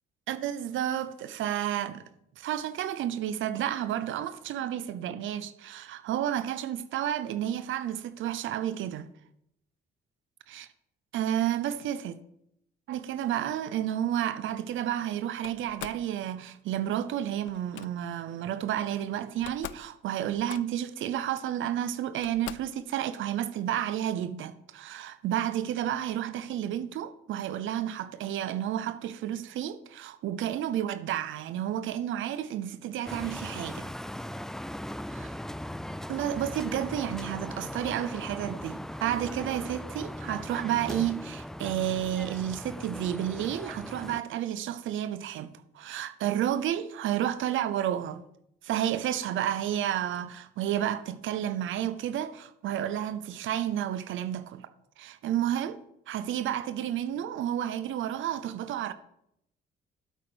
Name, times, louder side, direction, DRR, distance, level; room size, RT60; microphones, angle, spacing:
voice 1, 0.3-2.1 2.4-9.1 10.5-10.7 11.1-12.2 12.9-33.9 35.1-35.3 36.1-48.2 48.6-54.7 55.0-55.8 56.1-58.9, right 11 dB, 80° right, 0.7 m, -31 dB
Slam, 15.4-16.1 17.5-17.9 19.0-19.1 19.3-19.9 20.2-20.9 21.7-21.8 22.2-22.8, left 14 dB, 80° left, 0.4 m, -43 dB
sound 1, 33.1-44.2, left 1 dB, ahead, 0.3 m, -39 dB
9.1 x 8.2 x 5.0 m
cardioid pair, 90°, 20 cm